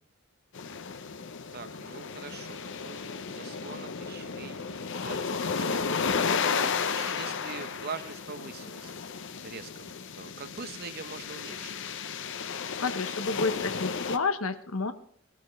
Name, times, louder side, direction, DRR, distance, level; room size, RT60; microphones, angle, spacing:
sound 1, 0.5-14.2, left 5 dB, 60° left, 0.8 m, -33 dB
voice 1, 1.5-6.0 6.6-8.9 9.4-11.7, right 5 dB, 50° right, 11 dB, 0.9 m, -43 dB
voice 2, 12.8-14.9, left 4 dB, 80° left, 10 dB, 1.1 m, -30 dB
17.0 x 12.5 x 3.2 m, 0.63 s
head